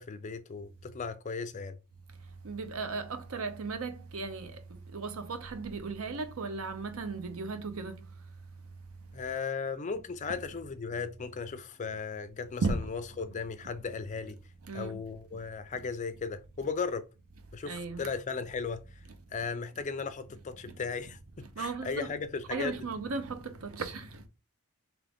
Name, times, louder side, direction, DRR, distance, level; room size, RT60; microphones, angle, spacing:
voice 1, 0.0-1.8 9.1-14.4 14.7-17.0 17.5-18.8 19.3-21.2 21.6-22.8, left 5 dB, 35° left, 0.4 m, -36 dB
voice 2, 2.4-8.0 12.6-12.8 14.7-15.0 17.7-18.1 21.6-22.1 22.5-24.2, right 4 dB, 70° right, 0.7 m, -36 dB
3.7 x 2.9 x 3.5 m
head